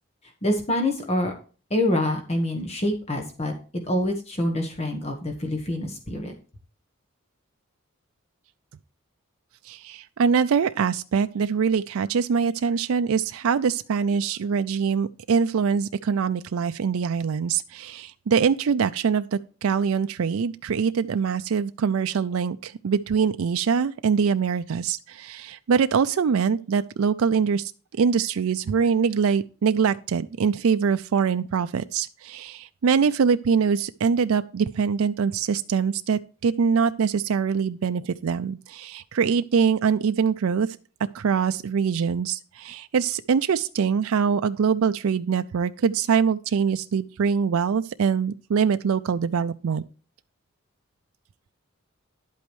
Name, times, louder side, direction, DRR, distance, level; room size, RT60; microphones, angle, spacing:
voice 1, 0.4-1.3 1.7-3.5 3.9-6.3, left 1 dB, 30° left, 3 dB, 1.3 m, -26 dB
voice 2, 9.6-27.7 28.0-40.8 41.1-49.8, right 6 dB, 75° right, 10 dB, 0.4 m, -23 dB
11.0 x 8.4 x 3.1 m, 0.37 s
head